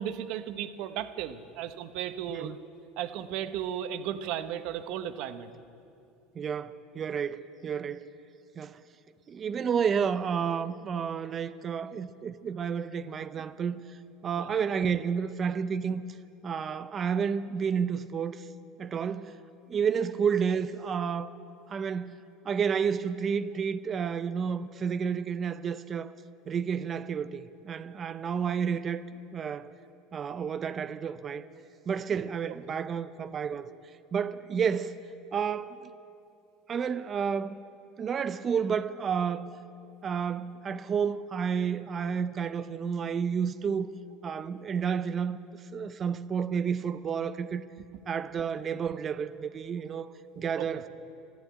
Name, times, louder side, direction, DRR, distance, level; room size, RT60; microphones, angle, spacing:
voice 1, 0.0-2.6 3.0-5.5 13.4-13.5 14.4-14.5 50.6-50.7, right 10 dB, 65° right, 0.9 m, -35 dB
voice 2, 6.4-8.1 8.6-8.8 9.3-16.0 16.4-18.5 18.8-19.4 19.7-21.3 21.7-26.1 26.5-29.0 29.3-29.7 30.1-31.5 31.9-35.0 35.3-35.9 36.7-37.5 38.0-39.5 40.0-43.9 44.2-45.4 45.7-47.6 48.1-50.1 50.4-50.9, right 7 dB, 35° right, 0.5 m, -31 dB
13.5 x 12.0 x 8.5 m
supercardioid pair, 110°, 0 cm